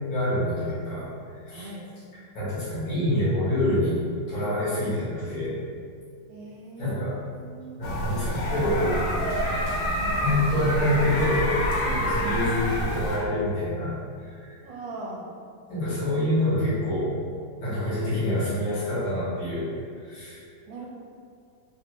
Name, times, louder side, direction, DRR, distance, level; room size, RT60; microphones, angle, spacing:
voice 1, 0.1-1.1 1.4-1.7 2.3-4.0 4.3-5.6 6.8-7.2 7.8-9.1 10.1-11.5 11.9-13.9 14.2-14.6 15.7-17.1 17.6-20.4, left 1 dB, 90° left, -11 dB, 2.1 m, -26 dB
voice 2, 1.5-1.9 6.3-7.8 10.0-10.4 11.8-12.1 14.6-15.3 20.7-20.9, right 2 dB, 75° right, -3 dB, 1.3 m, -40 dB
sound 1, 7.8-13.2, equal, 65° left, 0.9 m, -27 dB
4.2 x 2.1 x 3.0 m, 2.2 s
omnidirectional pair, 2.0 m